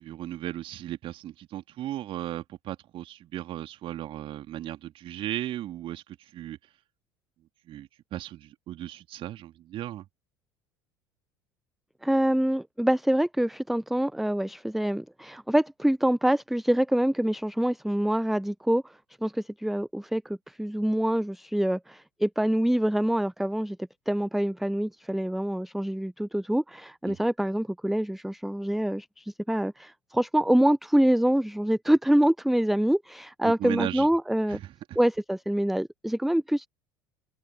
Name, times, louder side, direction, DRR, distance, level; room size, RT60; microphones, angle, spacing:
voice 1, 0.0-6.6 7.7-10.0 27.1-27.2 33.4-34.1 34.5-35.0, right 13 dB, 45° right, 3.4 m, -36 dB
voice 2, 12.0-23.8 24.1-34.6 35.0-36.7, right 1 dB, ahead, 0.8 m, -25 dB
open air
figure-of-eight pair, 65°, 13 cm